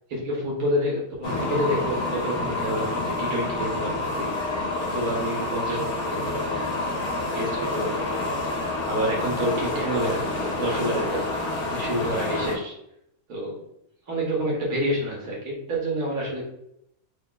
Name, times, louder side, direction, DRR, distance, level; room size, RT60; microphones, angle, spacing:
voice 1, 0.1-4.3 4.8-6.6 7.1-11.3 11.7-12.8 13.3-13.7 14.1-16.5, equal, 85° right, -3 dB, 1.5 m, -28 dB
sound 1, 1.2-12.6, left 2 dB, 85° left, 1.3 m, -28 dB
3.5 x 2.3 x 3.8 m, 0.77 s
omnidirectional pair, 1.5 m